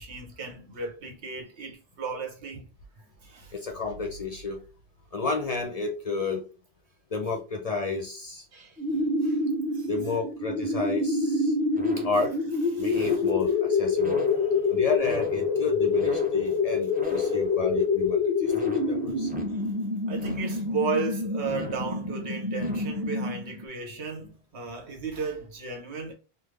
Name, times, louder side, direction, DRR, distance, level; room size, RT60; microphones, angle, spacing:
voice 1, 0.0-2.7 3.2-3.5 8.5-8.8 9.2-9.4 9.7-9.9 11.8-11.9 12.7-13.2 17.2-17.3 20.1-26.1, right 4 dB, 85° right, 1.2 m, -34 dB
voice 2, 3.5-4.6 5.1-6.5 7.1-8.5 9.9-11.6 12.0-12.3 12.8-14.2 14.7-19.3, left 4 dB, 50° left, 0.5 m, -31 dB
sound 1, 8.8-23.6, left 3 dB, 10° right, 0.6 m, -27 dB
3.4 x 2.0 x 3.2 m
omnidirectional pair, 1.1 m